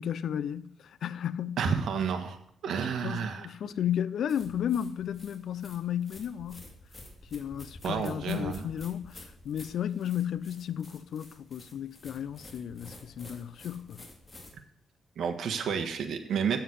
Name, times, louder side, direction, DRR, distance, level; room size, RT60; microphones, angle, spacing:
voice 1, 0.0-1.6 2.7-2.8 3.0-6.6 7.3-14.1, left 9 dB, 70° left, 0.5 m, -33 dB
voice 2, 1.6-2.4 2.6-3.5 7.8-8.6 15.2-16.6, right 6 dB, 70° right, 1.4 m, -30 dB
sound 1, 4.3-14.5, left 1 dB, 25° left, 2.5 m, -50 dB
7.9 x 7.3 x 8.4 m
cardioid pair, 115°, 0 cm